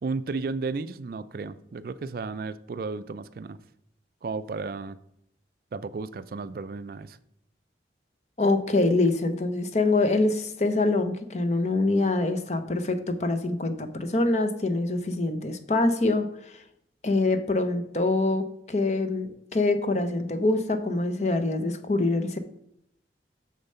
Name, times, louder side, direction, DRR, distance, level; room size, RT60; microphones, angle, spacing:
voice 1, 0.0-3.6 4.2-5.0 5.7-7.2, right 4 dB, 50° right, 15 dB, 0.4 m, -33 dB
voice 2, 8.4-16.6 17.0-22.4, left 2 dB, 40° left, 9 dB, 0.8 m, -25 dB
6.7 x 6.5 x 5.5 m, 0.75 s
head